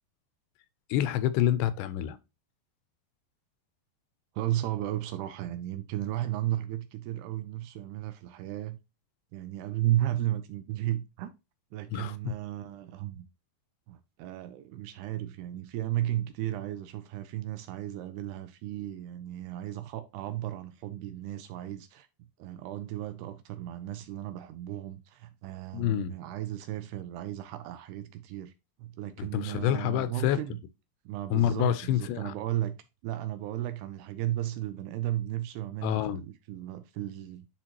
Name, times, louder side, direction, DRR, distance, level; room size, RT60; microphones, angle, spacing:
voice 1, 0.9-2.2 11.9-12.1 25.7-26.2 29.2-30.4 31.3-32.3 35.8-36.2, left 11 dB, 80° left, 2.7 m, -27 dB
voice 2, 4.3-8.8 9.3-11.3 11.7-13.3 13.9-22.1 22.4-28.5 28.8-30.6 31.1-32.8 33.0-37.5, right 13 dB, 80° right, 2.4 m, -34 dB
10.0 x 4.5 x 2.9 m
omnidirectional pair, 5.0 m